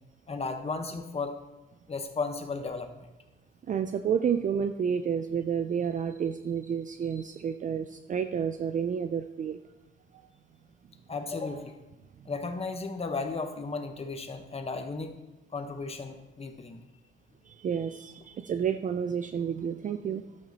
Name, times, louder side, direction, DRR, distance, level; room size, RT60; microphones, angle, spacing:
voice 1, 0.3-1.4 1.9-2.9 11.1-11.8 12.2-15.1 15.5-16.8, left 4 dB, 30° left, 6 dB, 1.2 m, -34 dB
voice 2, 3.7-9.6 10.1-10.3 17.5-20.4, right 7 dB, 40° right, 8 dB, 0.4 m, -30 dB
12.0 x 9.0 x 2.9 m, 1.1 s
cardioid pair, 90°, 20 cm